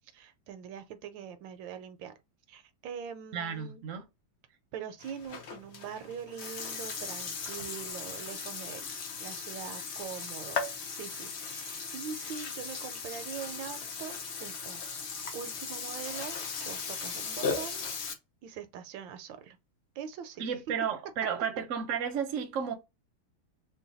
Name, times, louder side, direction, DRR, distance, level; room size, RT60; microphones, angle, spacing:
voice 1, 0.1-2.2 2.5-3.8 4.7-8.8 9.2-10.6 10.9-14.1 14.4-15.0 15.3-16.4 16.6-17.8 18.4-19.6 20.0-20.5, right 8 dB, 75° right, 1.2 m, -43 dB
voice 2, 3.3-4.0 20.4-22.7, right 7 dB, 60° right, 0.8 m, -32 dB
Burping eructation, 5.0-18.1, left 5 dB, 80° left, 0.6 m, -38 dB
3.9 x 2.2 x 3.9 m
omnidirectional pair, 2.1 m